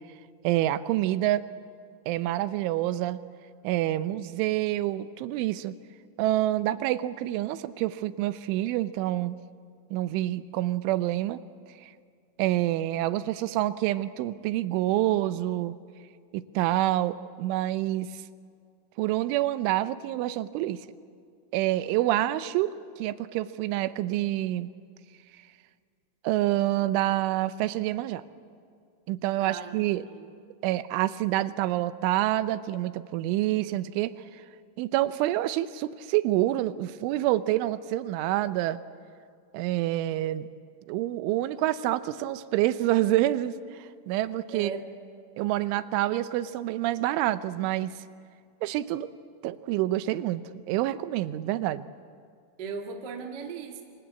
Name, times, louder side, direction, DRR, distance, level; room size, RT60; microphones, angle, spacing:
voice 1, 0.4-1.4 2.1-3.2 3.6-5.8 6.2-9.4 9.9-11.4 11.8-11.9 12.4-15.7 16.3-18.1 19.0-20.8 21.5-24.7 26.2-28.2 29.1-30.0 30.6-34.4 34.8-38.8 39.5-40.5 40.9-44.7 45.4-47.9 48.6-49.1 49.4-50.4 50.7-51.9, right 15 dB, 85° right, 13 dB, 3.3 m, -27 dB
voice 2, 29.4-30.3 44.5-44.9 52.6-53.8, right 5 dB, 65° right, 3 dB, 1.0 m, -38 dB
28.0 x 24.5 x 8.3 m, 2.2 s
omnidirectional pair, 5.4 m